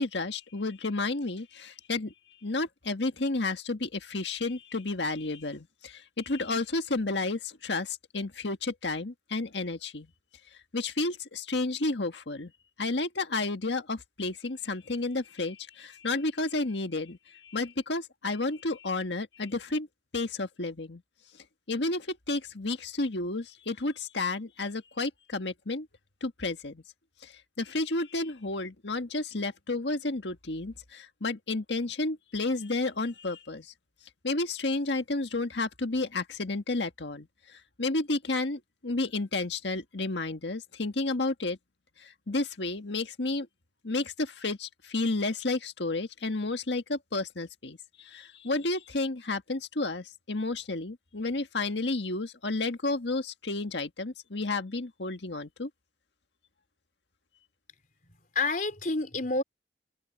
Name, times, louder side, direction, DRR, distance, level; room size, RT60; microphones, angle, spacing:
voice 1, 0.0-2.1 2.4-10.1 10.7-12.5 12.8-19.9 20.1-21.0 21.7-25.9 26.2-26.8 27.2-27.3 27.6-33.7 34.2-41.6 42.0-43.5 43.8-55.7, left 2 dB, 75° left, 1.7 m, -31 dB
voice 2, 58.0-59.4, left 3 dB, 45° left, 4.2 m, -29 dB
head